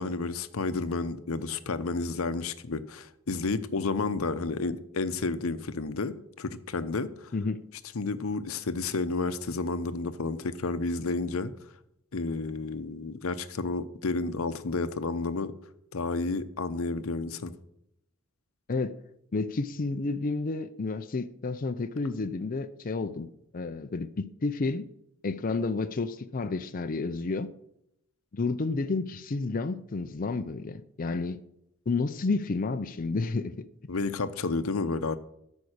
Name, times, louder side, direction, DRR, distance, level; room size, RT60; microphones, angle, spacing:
voice 1, 0.0-7.3 7.9-11.5 12.1-15.5 15.9-17.5 33.9-35.2, left 3 dB, 80° left, 0.8 m, -31 dB
voice 2, 19.3-24.9 25.2-27.5 28.3-31.4 31.9-33.5, left 3 dB, 40° left, 0.5 m, -30 dB
13.0 x 5.3 x 6.5 m
head